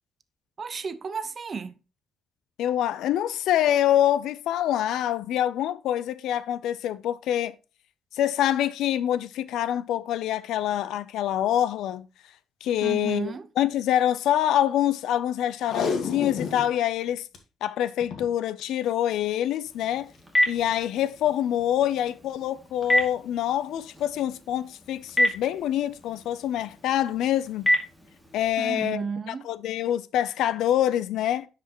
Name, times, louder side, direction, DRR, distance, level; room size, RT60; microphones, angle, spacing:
voice 1, 0.6-1.8 12.8-13.5 28.6-29.5, right 6 dB, 40° right, 0.7 m, -33 dB
voice 2, 2.6-7.6 8.1-12.1 12.6-17.3 17.6-20.1 20.5-27.7 28.3-31.5, left 11 dB, 85° left, 0.5 m, -26 dB
Packing tape duct tape, 15.6-16.7 17.1-17.2 17.3-17.4 18.0-18.3 19.3-19.6 20.1-20.2, left 5 dB, 65° left, 1.6 m, -30 dB
Telephone, 19.6-28.5, equal, 5° left, 2.3 m, -30 dB
9.9 x 5.0 x 3.0 m
cardioid pair, 90°, 0 cm